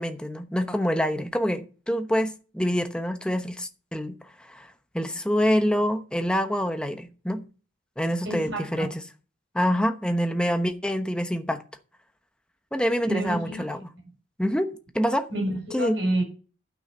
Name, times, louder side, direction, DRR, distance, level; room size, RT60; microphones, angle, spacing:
voice 1, 0.0-7.4 8.0-9.0 9.5-11.6 12.7-13.9 14.4-15.3 15.7-16.0, equal, 5° left, 1.0 m, -26 dB
voice 2, 8.2-8.9 13.0-13.6 15.3-16.2, right 1 dB, 70° right, 6.9 m, -28 dB
12.0 x 6.3 x 5.5 m
head